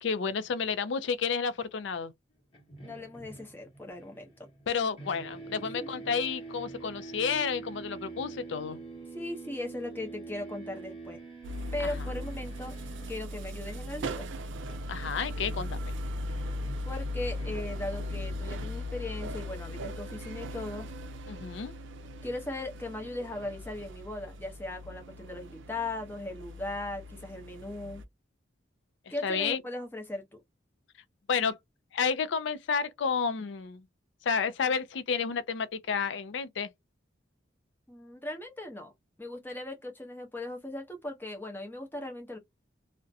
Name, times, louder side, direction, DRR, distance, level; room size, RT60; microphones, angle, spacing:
voice 1, 0.0-2.1 4.7-8.8 11.8-11.9 14.9-15.8 21.3-21.7 29.2-29.6 31.3-31.6 31.9-33.8 34.2-36.7, left 6 dB, 75° left, 0.4 m, -31 dB
sound 1, 2.5-4.7 5.0-18.9, right 3 dB, 30° left, 1.0 m, -46 dB
voice 2, 2.8-4.3 5.6-6.1 9.1-11.2 11.7-12.7 13.1-14.3 16.8-20.9 22.2-28.0 29.1-30.2 37.9-38.9 39.2-42.4, left 2 dB, 10° left, 0.6 m, -38 dB
sound 2, 11.4-28.0, left 1 dB, 80° right, 0.4 m, -38 dB
2.4 x 2.1 x 2.6 m
head